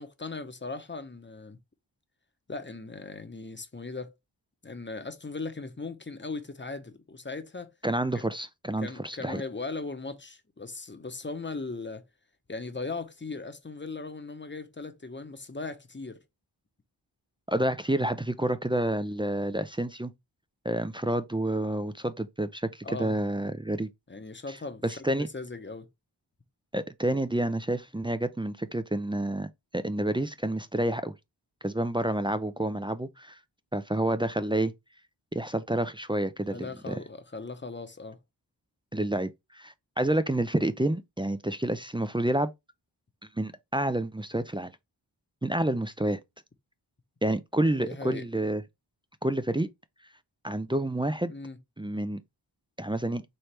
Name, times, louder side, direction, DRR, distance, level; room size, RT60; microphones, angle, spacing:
voice 1, 0.0-1.6 2.5-4.1 4.6-7.7 8.1-8.3 8.8-12.0 12.5-16.2 22.8-23.1 24.1-24.8 25.1-25.9 36.5-38.2 47.8-48.3 51.3-51.6, left 3 dB, 25° left, 0.8 m, -38 dB
voice 2, 7.8-9.4 17.5-20.1 20.7-23.9 24.8-25.3 26.7-31.1 31.6-33.4 33.7-34.7 35.3-36.9 38.9-42.5 43.4-44.7 45.4-46.2 47.2-48.6 49.2-49.7 50.4-51.3 51.8-52.2 52.8-53.2, right 1 dB, 15° right, 0.3 m, -29 dB
4.4 x 3.2 x 3.2 m
wide cardioid pair, 60°, 45 cm